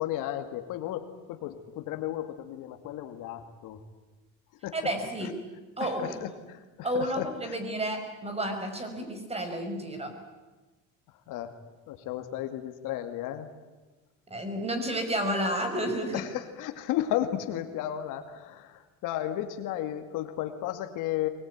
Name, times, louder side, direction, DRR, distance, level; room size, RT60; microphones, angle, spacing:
voice 1, 0.0-3.8 4.6-4.7 5.2-5.3 5.8-7.6 11.3-11.5 11.9-13.5 16.1-21.3, left 12 dB, 70° left, 8 dB, 2.3 m, -34 dB
voice 2, 4.7-5.3 5.8-6.2 6.8-10.1 14.3-16.2, right 1 dB, 20° right, 6 dB, 5.3 m, -31 dB
23.0 x 20.5 x 9.5 m, 1.2 s
cardioid pair, 115°, 33 cm